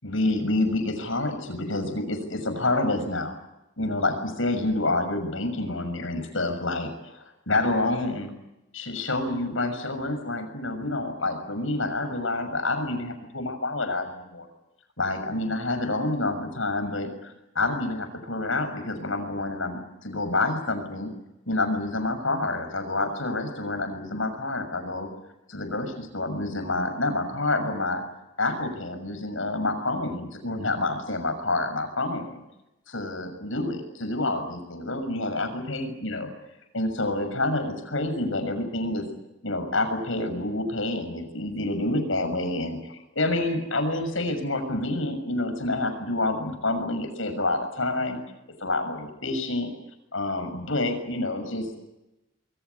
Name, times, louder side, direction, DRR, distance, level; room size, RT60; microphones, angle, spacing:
voice 1, 0.0-3.4 3.8-8.3 8.7-14.5 15.0-21.1 21.5-25.1 25.5-28.0 28.4-32.4 32.9-36.3 36.7-39.1 39.4-48.2 48.6-49.7 50.1-51.8, left 2 dB, 75° left, 7 dB, 6.7 m, -28 dB
26.5 x 23.0 x 8.4 m, 0.93 s
head